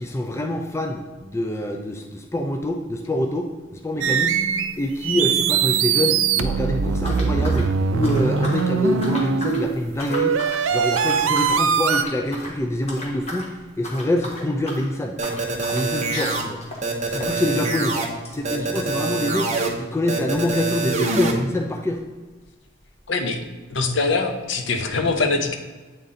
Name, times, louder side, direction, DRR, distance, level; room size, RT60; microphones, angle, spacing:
voice 1, 0.0-4.4 4.8-10.4 10.7-15.2 15.7-16.6 17.1-18.0 18.3-22.0, left 1 dB, 15° left, 3 dB, 0.4 m, -25 dB
sound 1, 4.0-4.8 5.0-9.8 10.1-12.0, right 6 dB, 75° right, 0.4 m, -22 dB
sound 2, 7.0-8.7 9.0-9.6 9.9-10.6 10.9-11.6 11.9-12.6 12.9-13.5 13.8-19.5 19.7-19.8 20.0-20.1 20.8-20.9, left 1 dB, 30° left, 1.2 m, -36 dB
sound 3, 15.2-16.4 16.8-18.1 18.4-19.7 20.1-21.3, right 3 dB, 35° right, 0.8 m, -25 dB
voice 2, 23.1-23.4 23.7-25.6, left 3 dB, 65° left, 6 dB, 0.7 m, -23 dB
8.2 x 4.1 x 3.7 m, 1.3 s
head